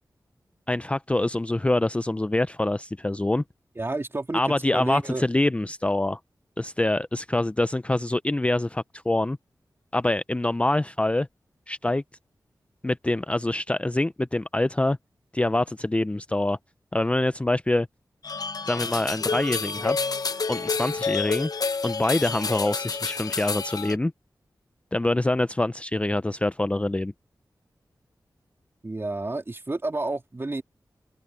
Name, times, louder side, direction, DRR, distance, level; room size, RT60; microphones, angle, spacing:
voice 1, 0.7-3.4 4.3-6.2 6.6-9.4 9.9-11.3 11.7-12.0 12.8-15.0 15.3-16.6 16.9-17.9 18.7-20.0 20.5-21.5 21.8-24.1 24.9-27.1, left 2 dB, 15° left, 0.5 m, -25 dB
voice 2, 3.8-4.4 4.7-5.2 28.8-30.6, right 2 dB, 35° right, 3.0 m, -30 dB
sound 1, 18.2-24.0, left 4 dB, 60° left, 0.7 m, -29 dB
wide cardioid pair, 70°, 7 cm